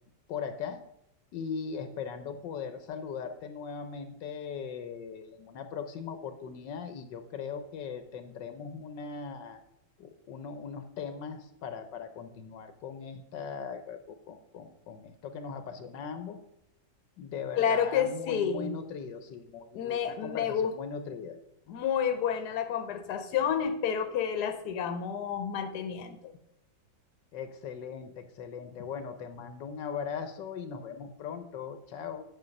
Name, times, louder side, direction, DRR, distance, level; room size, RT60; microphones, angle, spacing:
voice 1, 0.3-0.8 1.3-9.6 10.0-16.4 17.2-21.4 27.3-32.2, left 6 dB, 85° left, 9 dB, 1.6 m, -39 dB
voice 2, 17.6-18.7 19.7-20.7 21.7-26.3, left 8 dB, 70° left, 9 dB, 1.4 m, -30 dB
9.2 x 6.1 x 5.3 m, 0.77 s
omnidirectional pair, 1.9 m